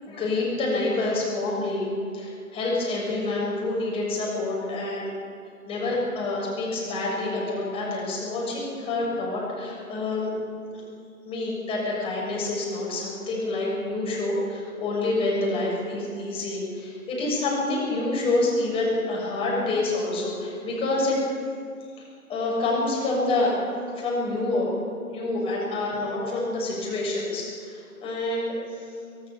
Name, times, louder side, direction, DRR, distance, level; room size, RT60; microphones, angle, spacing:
voice 1, 0.0-5.1 5.7-10.3 10.7-11.0 11.2-21.2 22.3-24.8 25.1-28.8, left 2 dB, 10° left, -4 dB, 7.1 m, -27 dB
25.5 x 17.0 x 7.4 m, 2.3 s
figure-of-eight pair, 135°, 44 cm